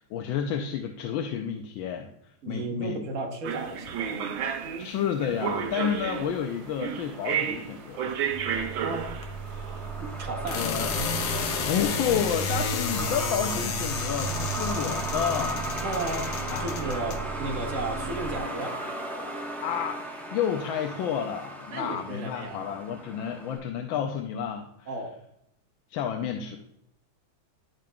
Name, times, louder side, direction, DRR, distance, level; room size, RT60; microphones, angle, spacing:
voice 1, 0.0-2.1 2.5-3.0 4.8-8.2 10.5-10.9 11.7-15.7 16.5-16.8 19.6-20.0 20.3-24.9 25.9-26.6, left 8 dB, 80° left, 3 dB, 1.4 m, -30 dB
voice 2, 2.4-4.3 8.8-9.2 10.0-10.7 15.8-18.8 21.7-22.7 24.9-25.2, right 2 dB, 50° right, 1 dB, 1.1 m, -34 dB
sound 1, 3.4-10.1, right 8 dB, 85° right, 1.6 m, -32 dB
Truck, 6.1-23.6, right 1 dB, ahead, 0.6 m, -37 dB
sound 2, 8.3-18.4, left 2 dB, 65° left, 1.2 m, -32 dB
10.5 x 5.2 x 2.3 m, 0.77 s
omnidirectional pair, 2.2 m